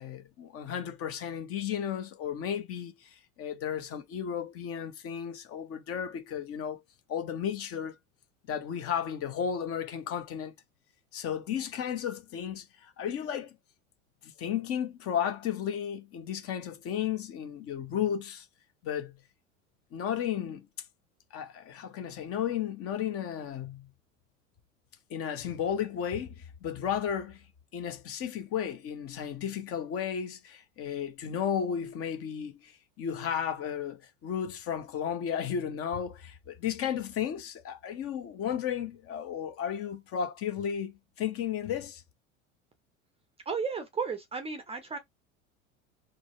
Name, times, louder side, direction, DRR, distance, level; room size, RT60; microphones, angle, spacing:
voice 1, 0.0-6.8 7.1-7.9 8.5-10.5 11.1-13.5 14.2-18.5 18.8-19.1 19.9-20.7 21.3-23.9 25.1-27.4 27.7-42.0, left 8 dB, 35° left, 0.8 m, -34 dB
voice 2, 43.5-45.0, right 5 dB, 15° right, 0.6 m, -33 dB
3.8 x 2.1 x 2.4 m
figure-of-eight pair, 75°, 40 cm